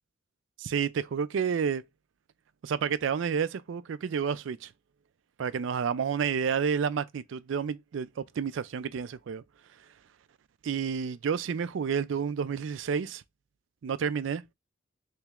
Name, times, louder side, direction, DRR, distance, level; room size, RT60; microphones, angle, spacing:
voice 1, 0.6-1.8 2.6-4.7 5.4-9.4 10.6-13.2 13.8-14.4, right 6 dB, 70° right, 0.4 m, -30 dB
3.2 x 3.0 x 3.4 m
head